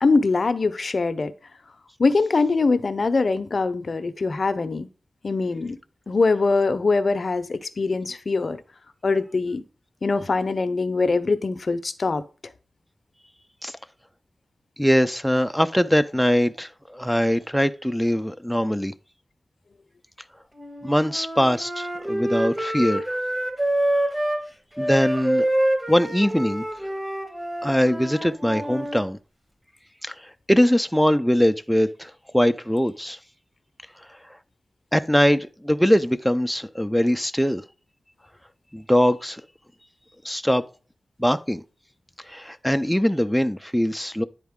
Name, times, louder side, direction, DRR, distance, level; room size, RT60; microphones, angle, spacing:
voice 1, 0.0-1.3 2.0-4.9 5.2-5.8 6.1-8.6 9.0-9.6 10.0-12.2, left 3 dB, 60° left, 0.6 m, -22 dB
voice 2, 14.8-18.9 20.8-23.2 24.8-25.5 25.9-26.6 27.6-29.2 30.0-33.2 34.9-37.6 38.7-39.4 40.2-40.6 41.2-41.6 42.3-44.2, equal, ahead, 0.4 m, -22 dB
Wind instrument woodwind instrument, 20.6-24.4 24.8-29.0, right 1 dB, 20° right, 1.5 m, -26 dB
10.5 x 4.1 x 3.6 m
wide cardioid pair, 70°, 0 cm